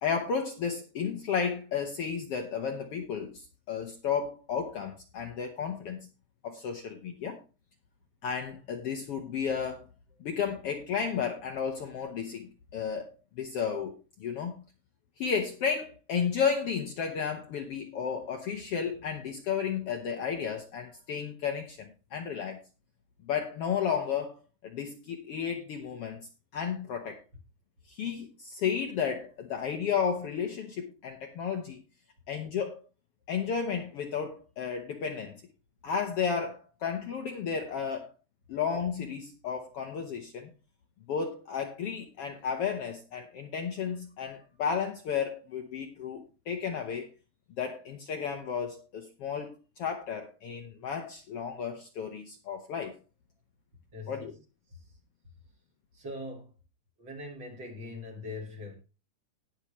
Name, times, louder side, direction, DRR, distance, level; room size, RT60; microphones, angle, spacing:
voice 1, 0.0-6.0 6.4-7.4 8.2-9.8 10.2-14.6 15.2-22.6 23.3-27.2 27.9-31.8 32.3-32.8 33.3-35.4 35.8-38.1 38.5-40.5 41.1-47.1 47.6-53.0 54.1-54.3, left 6 dB, 65° left, 1.7 m, -33 dB
voice 2, 53.9-54.4 54.7-55.0 55.9-56.5 57.0-58.7, left 2 dB, 40° right, 2.7 m, -42 dB
18.5 x 6.3 x 3.1 m
omnidirectional pair, 3.6 m